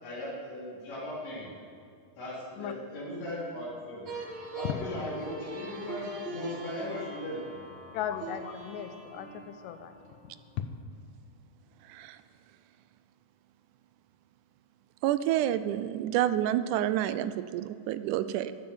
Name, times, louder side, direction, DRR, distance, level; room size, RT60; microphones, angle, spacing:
voice 1, 0.0-1.6 2.2-4.2 4.5-7.9, left 1 dB, 55° left, -9 dB, 4.9 m, -38 dB
sound 1, 4.1-10.8, right 2 dB, 50° right, 1.7 m, -42 dB
voice 2, 7.9-10.0, left 9 dB, 90° left, 9 dB, 2.4 m, -36 dB
voice 3, 11.9-12.2 15.0-18.5, right 12 dB, 80° right, 13 dB, 1.9 m, -29 dB
13.5 x 8.8 x 7.2 m, 2.3 s
omnidirectional pair, 3.7 m